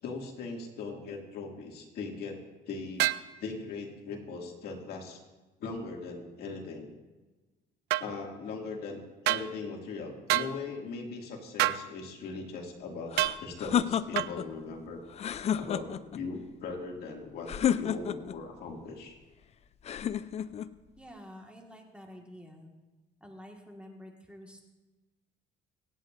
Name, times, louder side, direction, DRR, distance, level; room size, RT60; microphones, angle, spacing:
voice 1, 0.0-2.4 2.7-3.1 3.4-5.2 5.6-6.9 8.0-15.0 15.5-17.5 17.7-19.2, left 4 dB, 70° left, 0 dB, 2.3 m, -39 dB
sound 1, 3.0-3.3 7.9-8.1 9.2-9.5 10.3-10.5 11.6-11.8 13.2-13.4 14.1-14.3, right 17 dB, 80° right, 0.4 m, -27 dB
sound 2, 13.1-14.5 15.1-16.2 17.5-18.4 19.8-20.7, left 9 dB, 40° left, 0.4 m, -30 dB
voice 2, 21.0-22.7 23.2-24.6, equal, 5° right, 1 dB, 1.7 m, -49 dB
25.5 x 9.1 x 2.6 m, 1.2 s
cardioid pair, 110°, 17 cm